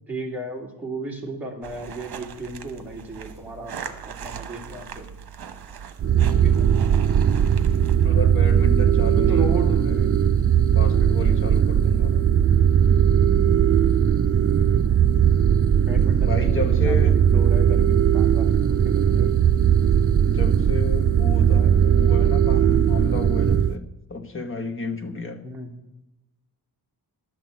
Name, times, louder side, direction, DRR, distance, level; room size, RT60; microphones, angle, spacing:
voice 1, 0.1-3.8 4.0-5.1 6.1-6.7 9.2-9.8 15.8-19.3 25.4-25.7, right 2 dB, 5° right, -2 dB, 2.3 m, -34 dB
sound 1, 1.6-8.1, right 7 dB, 65° right, 1.0 m, -39 dB
sound 2, 6.0-23.7, right 9 dB, 40° right, 0.4 m, -18 dB
voice 2, 8.0-10.2 10.7-12.1 12.8-13.0 16.3-17.1 19.5-23.8 24.1-25.4, left 3 dB, 30° left, 6 dB, 1.1 m, -32 dB
11.5 x 6.1 x 7.6 m, 0.90 s
wide cardioid pair, 145°, 40 cm